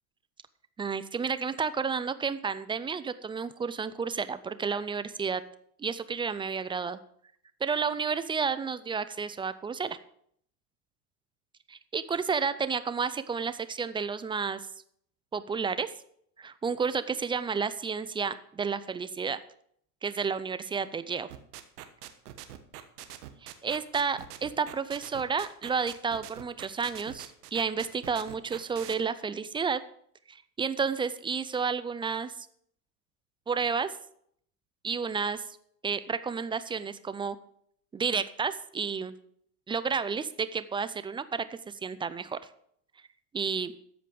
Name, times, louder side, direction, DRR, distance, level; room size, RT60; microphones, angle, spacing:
voice 1, 0.8-5.4 5.8-7.0 7.6-10.0 11.7-14.7 15.3-15.9 16.4-19.4 20.0-21.3 23.4-29.8 30.3-32.5 33.5-33.9 34.8-35.4 35.8-37.4 37.9-39.1 39.7-42.4 43.3-43.7, right 5 dB, 10° right, 13 dB, 0.4 m, -31 dB
sound 1, 21.3-28.9, right 13 dB, 80° right, 1.4 m, -43 dB
13.5 x 5.1 x 7.6 m, 0.67 s
hypercardioid pair, 100°, 45 cm